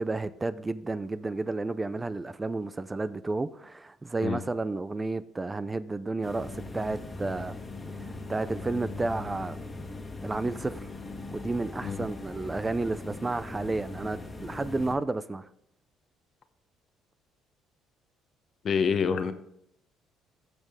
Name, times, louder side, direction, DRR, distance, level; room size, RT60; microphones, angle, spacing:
voice 1, 0.0-7.5 8.1-9.6 10.2-10.9 11.3-15.5, right 3 dB, 20° right, 0.4 m, -31 dB
sound 1, 6.2-14.9, left 2 dB, 20° left, 1.7 m, -40 dB
voice 2, 18.6-19.3, left 6 dB, 50° left, 0.9 m, -26 dB
15.0 x 5.2 x 3.6 m
supercardioid pair, 75°, 0 cm